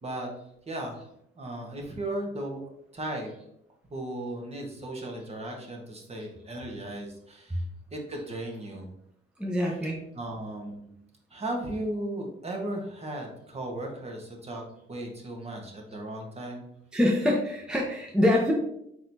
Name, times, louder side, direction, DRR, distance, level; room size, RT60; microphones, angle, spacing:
voice 1, 0.7-1.0 1.3-3.3 3.9-7.6 7.9-8.9 10.1-10.9 11.3-14.6 14.9-16.6, right 1 dB, 30° right, 1 dB, 1.2 m, -36 dB
voice 2, 9.4-10.0 16.9-18.5, left 1 dB, 5° right, -2 dB, 0.8 m, -25 dB
4.5 x 4.0 x 2.7 m, 0.77 s
cardioid pair, 90°, 20 cm